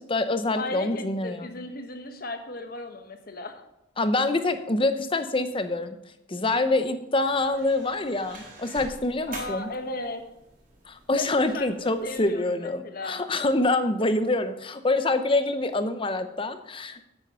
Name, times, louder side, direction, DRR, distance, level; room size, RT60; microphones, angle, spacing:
voice 1, 0.0-1.5 4.0-6.0 6.3-9.7 10.9-17.1, left 2 dB, 30° left, 10 dB, 0.8 m, -26 dB
voice 2, 0.5-3.6 9.3-10.2 11.2-13.2, left 2 dB, 50° left, 6 dB, 1.3 m, -36 dB
sound 1, 7.1-12.3, right 2 dB, 45° right, 3.9 m, -46 dB
9.4 x 8.0 x 5.6 m, 0.84 s
head